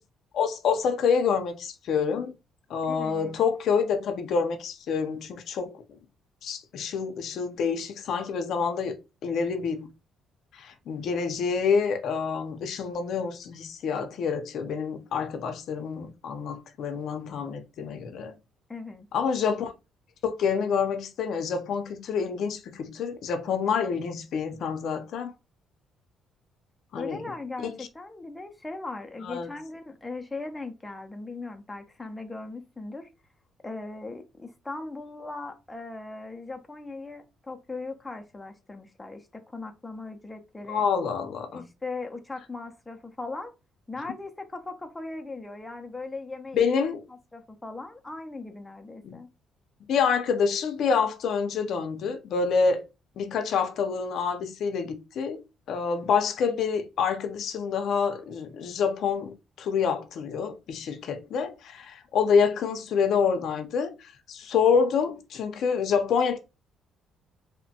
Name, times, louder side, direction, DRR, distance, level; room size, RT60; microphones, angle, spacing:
voice 1, 0.3-2.3 2.7-5.7 6.4-9.0 9.2-9.9 10.5-18.4 19.1-19.7 20.2-25.3 26.9-27.2 27.6-27.8 29.2-29.5 40.7-41.6 46.5-47.0 49.0-49.2 49.9-52.8 53.2-55.4 55.7-66.4, left 6 dB, 65° left, 0.5 m, -27 dB
voice 2, 2.8-3.4 18.7-19.1 27.0-33.1 33.6-40.9 41.5-43.5 43.9-46.7 47.3-49.3, left 3 dB, 10° left, 0.4 m, -39 dB
2.9 x 2.1 x 2.7 m
cardioid pair, 115°, 0 cm